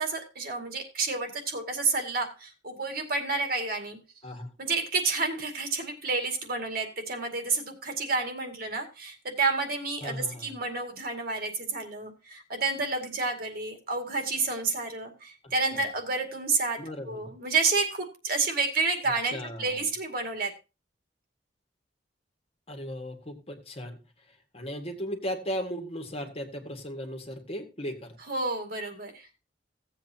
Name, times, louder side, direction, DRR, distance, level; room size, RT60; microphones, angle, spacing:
voice 1, 0.0-4.0 4.6-20.5 28.3-29.3, right 3 dB, 55° right, 5 dB, 2.2 m, -30 dB
voice 2, 10.0-10.5 15.7-15.8 16.8-17.3 19.2-19.9 22.7-24.0 24.5-28.1, equal, 35° left, 4 dB, 1.8 m, -36 dB
16.5 x 8.0 x 2.8 m, 0.28 s
head